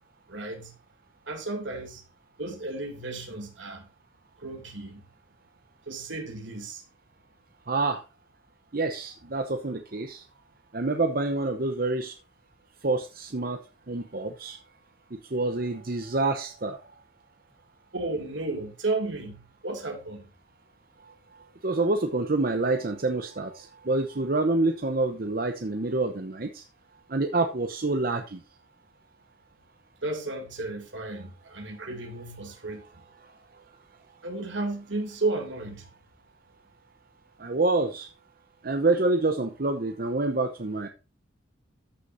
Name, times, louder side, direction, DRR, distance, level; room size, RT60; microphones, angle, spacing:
voice 1, 0.3-0.7 1.3-2.0 2.4-3.9 4.4-5.0 5.9-6.8 17.9-20.3 30.0-32.8 34.2-35.9, right 2 dB, 70° right, 2.5 m, -33 dB
voice 2, 7.7-8.0 8.7-10.2 10.7-12.1 12.8-13.6 13.9-14.6 15.3-16.8 21.6-26.6 27.1-28.4 37.4-38.1 38.6-40.9, right 2 dB, 45° right, 0.8 m, -27 dB
14.0 x 6.4 x 2.6 m
head